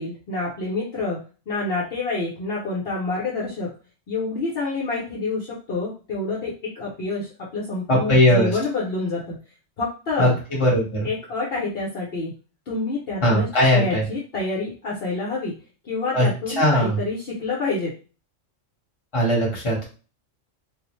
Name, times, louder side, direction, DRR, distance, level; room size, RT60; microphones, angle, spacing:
voice 1, 0.0-3.7 4.1-9.4 9.8-10.3 11.0-12.3 12.7-15.6 15.8-17.9, left 3 dB, 55° left, -5 dB, 0.9 m, -28 dB
voice 2, 7.9-8.5 10.2-11.1 13.2-14.0 16.1-16.3 16.6-17.0 19.1-19.9, left 1 dB, 25° left, -3 dB, 1.0 m, -19 dB
2.4 x 2.0 x 3.0 m, 0.36 s
omnidirectional pair, 1.3 m